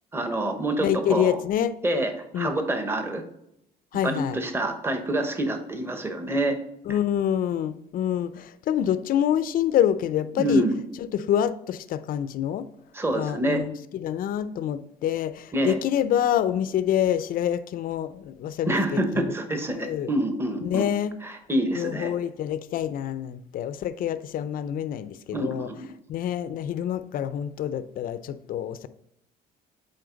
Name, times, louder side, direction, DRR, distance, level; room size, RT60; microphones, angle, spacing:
voice 1, 0.1-1.4 1.8-3.2 4.0-6.6 10.4-10.7 12.9-13.6 15.5-15.8 18.7-20.9 21.2-22.1 25.3-25.9, right 1 dB, 15° right, 6 dB, 1.1 m, -26 dB
voice 2, 0.8-1.7 2.3-2.6 3.9-4.4 6.9-10.6 11.0-12.7 13.1-19.3 19.7-20.1 20.6-21.1 21.7-25.7 26.1-28.9, left 10 dB, 55° left, 13 dB, 0.5 m, -26 dB
7.7 x 4.3 x 3.9 m, 0.79 s
cardioid pair, 110°, 17 cm